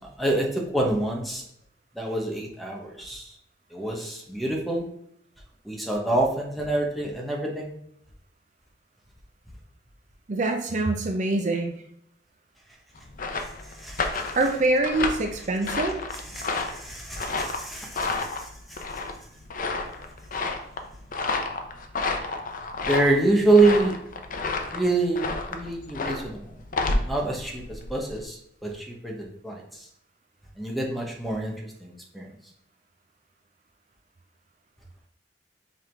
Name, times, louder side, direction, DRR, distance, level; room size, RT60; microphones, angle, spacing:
voice 1, 0.2-1.4 2.0-3.3 3.7-4.9 5.6-7.7 13.8-14.3 16.3-18.5 22.9-24.0 24.7-26.4 27.0-27.6 27.9-28.4 28.6-29.6 30.6-31.6 31.8-32.3, right 2 dB, ahead, -1 dB, 1.1 m, -26 dB
voice 2, 10.3-11.7 14.4-16.0, right 2 dB, 45° right, 4 dB, 0.6 m, -24 dB
sound 1, 13.0-28.2, left 3 dB, 50° left, 0.7 m, -31 dB
5.6 x 3.6 x 4.6 m, 0.73 s
head